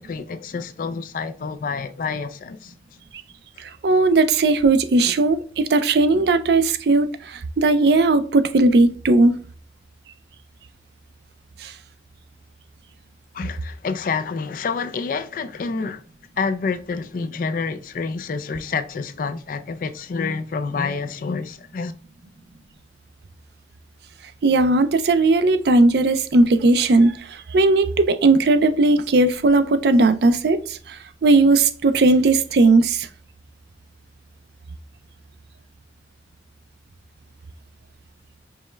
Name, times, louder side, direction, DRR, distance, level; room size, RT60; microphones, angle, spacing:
voice 1, 0.0-2.7 13.3-16.0 16.4-21.9, left 4 dB, 45° left, 0.3 m, -28 dB
voice 2, 3.6-9.3 11.6-11.7 24.4-33.1, right 2 dB, 60° right, 0.4 m, -17 dB
5.3 x 2.1 x 3.2 m
head